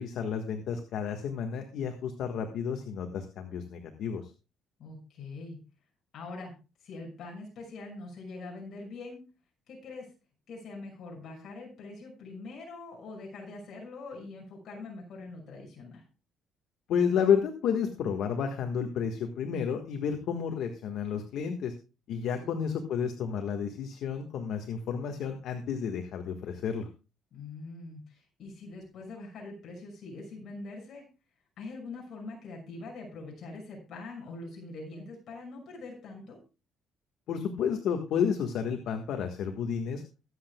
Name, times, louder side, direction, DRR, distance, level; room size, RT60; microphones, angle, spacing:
voice 1, 0.0-4.3 16.9-21.7 22.1-26.9 37.3-40.0, left 7 dB, 60° left, 4 dB, 1.5 m, -31 dB
voice 2, 4.8-5.6 6.1-6.5 6.8-9.2 9.7-10.1 10.5-16.0 22.4-22.5 27.3-31.0 31.6-36.4, left 3 dB, 45° left, 0 dB, 6.0 m, -43 dB
23.0 x 8.0 x 2.3 m, 0.32 s
cardioid pair, 160°, 0 cm